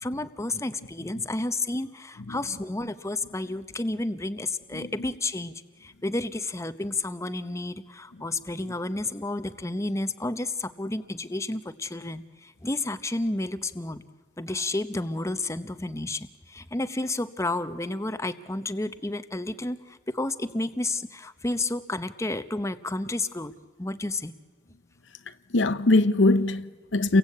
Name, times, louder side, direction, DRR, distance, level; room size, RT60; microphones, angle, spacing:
voice 1, 0.0-5.5 5.8-14.0 14.4-23.5 23.8-24.3, left 2 dB, 15° left, 0.9 m, -31 dB
voice 2, 4.7-5.1 25.5-27.2, left 2 dB, 80° left, 0.9 m, -22 dB
29.5 x 23.0 x 8.5 m
head